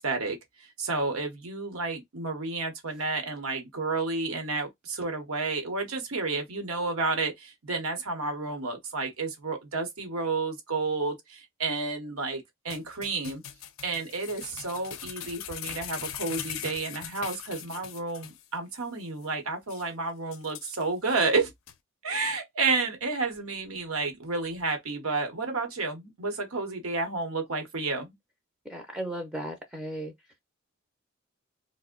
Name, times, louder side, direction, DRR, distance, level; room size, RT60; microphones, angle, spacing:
voice 1, 0.0-13.4 13.8-21.5 22.0-28.1, right 3 dB, 85° right, 0.9 m, -31 dB
sound 1, 12.7-18.4 18.7-18.8 19.2-19.3 19.7-19.9 20.3-21.1 21.7-21.8, left 10 dB, 75° left, 0.4 m, -40 dB
voice 2, 28.7-30.1, right 1 dB, 5° right, 0.4 m, -35 dB
2.5 x 2.0 x 3.6 m
head